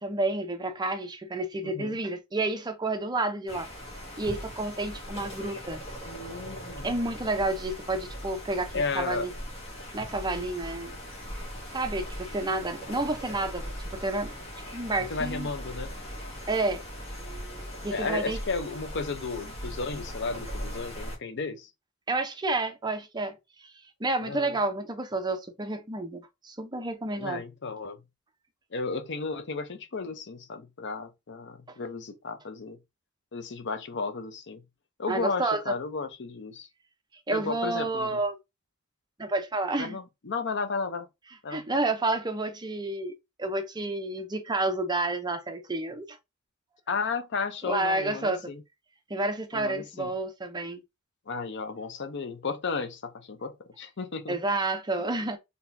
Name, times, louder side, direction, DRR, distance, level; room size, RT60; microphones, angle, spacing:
voice 1, 0.0-3.7 4.2-5.8 6.8-9.3 9.9-11.0 11.7-13.7 14.0-14.3 14.7-15.5 16.5-16.8 17.2-18.4 22.1-23.7 24.0-27.4 35.1-35.8 37.3-38.4 39.2-40.0 41.5-43.1 43.4-46.2 47.6-48.5 49.1-50.8 54.3-55.4, right 2 dB, 20° right, 0.7 m, -30 dB
voice 2, 1.6-2.0 6.0-6.9 8.7-9.3 15.1-15.9 17.9-21.7 24.2-24.5 27.2-28.0 28.7-32.8 33.3-34.6 35.0-36.7 37.3-38.2 39.8-41.1 41.4-41.6 46.9-48.6 49.5-50.1 51.3-54.4, left 4 dB, 60° left, 0.7 m, -34 dB
sound 1, 3.5-21.2, equal, 30° left, 1.7 m, -39 dB
4.0 x 3.5 x 2.7 m
head